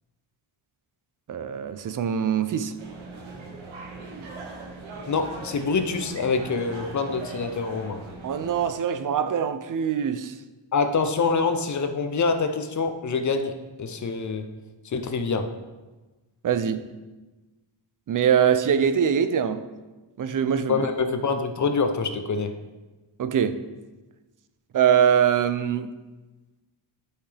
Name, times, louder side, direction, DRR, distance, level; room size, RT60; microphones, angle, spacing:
voice 1, 1.3-2.7 8.2-10.3 16.4-16.8 18.1-19.6 20.2-20.8 23.2-23.6 24.7-25.9, right 8 dB, 45° right, 11 dB, 0.5 m, -23 dB
sound 1, 2.8-8.7, right 3 dB, 90° right, 1.3 m, -40 dB
voice 2, 5.1-8.0 10.7-13.5 13.8-14.5 14.8-15.5 20.7-22.5, left 4 dB, 40° left, 8 dB, 0.6 m, -25 dB
11.0 x 5.7 x 3.4 m, 1.2 s
wide cardioid pair, 150°, 46 cm